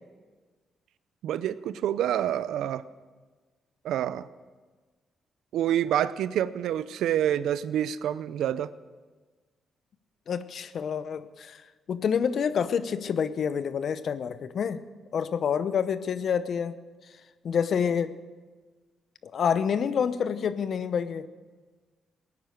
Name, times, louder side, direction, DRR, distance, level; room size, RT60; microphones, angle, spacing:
voice 1, 1.2-2.8 3.8-4.3 5.5-8.7, right 11 dB, 85° right, 16 dB, 0.5 m, -27 dB
voice 2, 10.3-11.6 11.9-14.8 15.1-16.8 17.4-18.1 19.2-21.3, left 7 dB, 65° left, 13 dB, 0.8 m, -28 dB
18.0 x 9.6 x 6.7 m, 1.4 s
cardioid pair, 75°, 0 cm